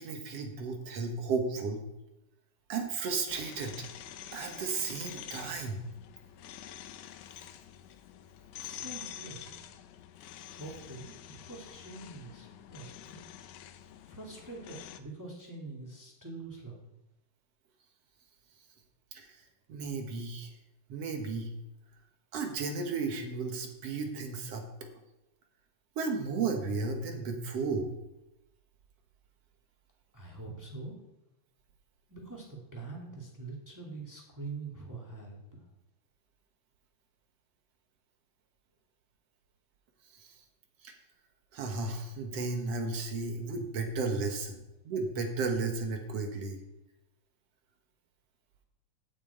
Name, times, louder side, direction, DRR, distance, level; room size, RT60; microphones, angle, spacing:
voice 1, 0.0-1.8 2.7-3.9 4.3-5.8 19.1-19.4 19.7-20.5 20.9-21.5 22.3-24.7 26.0-27.9 40.1-40.3 40.8-40.9 41.5-46.6, right 4 dB, 60° right, 4 dB, 2.3 m, -34 dB
sound 1, 3.3-15.0, left 11 dB, 90° left, 2.1 m, -47 dB
voice 2, 8.5-9.6 10.5-13.2 14.1-16.8 30.1-31.0 32.1-35.6, right 3 dB, 5° right, -3 dB, 2.0 m, -44 dB
9.1 x 6.2 x 8.3 m, 0.91 s
omnidirectional pair, 3.4 m